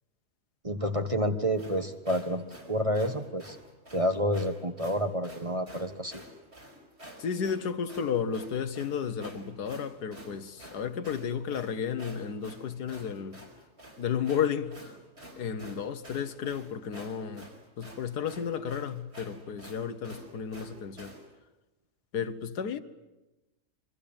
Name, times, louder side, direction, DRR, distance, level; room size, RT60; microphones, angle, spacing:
voice 1, 0.6-3.6 3.9-6.2, equal, 20° right, 1.3 m, -29 dB
sound 1, 1.5-21.3, right 1 dB, 40° right, 5.4 m, -49 dB
voice 2, 7.2-13.4 14.0-14.9 15.4-17.5 17.8-21.1 22.1-22.8, left 7 dB, 80° left, 1.8 m, -33 dB
26.0 x 24.0 x 8.9 m
omnidirectional pair, 1.7 m